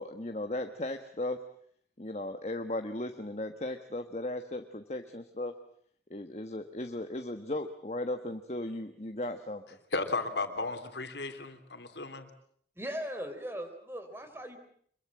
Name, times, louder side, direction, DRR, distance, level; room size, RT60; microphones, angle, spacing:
voice 1, 0.0-1.4 2.0-5.5 6.1-9.6, left 1 dB, 40° left, 6 dB, 1.4 m, -36 dB
voice 2, 9.9-12.3, left 3 dB, 80° left, 8 dB, 3.1 m, -34 dB
voice 3, 12.8-14.6, equal, 15° right, 7 dB, 3.6 m, -39 dB
25.5 x 23.0 x 7.5 m, 0.62 s
head